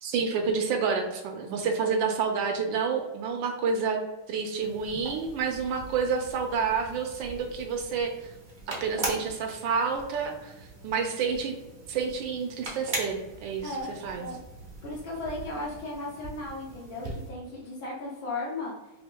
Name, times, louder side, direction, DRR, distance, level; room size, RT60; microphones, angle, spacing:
voice 1, 0.0-4.0 4.3-8.3 8.7-10.5 10.8-11.6 11.9-13.7 14.0-14.2, right 5 dB, 75° right, 4 dB, 1.2 m, -29 dB
sound 1, 4.6-17.3, right 2 dB, 45° right, 0.5 m, -41 dB
voice 2, 13.6-14.4 14.8-18.7, left 2 dB, 70° left, -5 dB, 1.5 m, -36 dB
5.3 x 2.5 x 2.2 m, 1.1 s
omnidirectional pair, 2.3 m